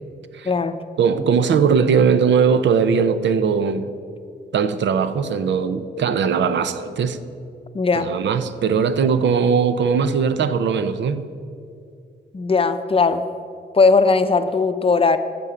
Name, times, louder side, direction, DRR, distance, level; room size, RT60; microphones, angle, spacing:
voice 1, 0.4-0.8 7.7-8.1 12.3-13.3 13.7-15.2, left 4 dB, 30° left, 10 dB, 0.6 m, -18 dB
voice 2, 1.0-3.9 4.5-7.2 8.0-11.3, right 6 dB, 85° right, 12 dB, 0.7 m, -19 dB
11.0 x 7.0 x 8.8 m, 2.4 s
wide cardioid pair, 110°, 18 cm